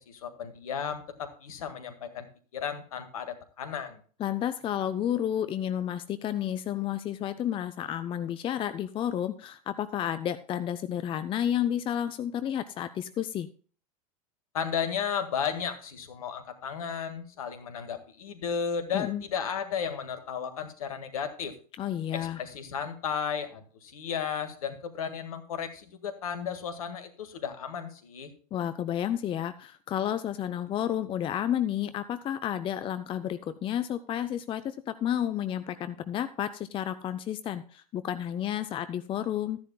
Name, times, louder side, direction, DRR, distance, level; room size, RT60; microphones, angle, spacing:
voice 1, 0.0-2.3 2.5-4.0 14.5-21.5 22.1-28.3, left 7 dB, 65° left, 9 dB, 1.8 m, -34 dB
voice 2, 4.2-13.5 18.9-19.2 21.8-22.4 28.5-39.6, left 10 dB, 25° left, 12 dB, 0.6 m, -31 dB
14.5 x 10.5 x 2.3 m, 0.41 s
figure-of-eight pair, 85°, 19 cm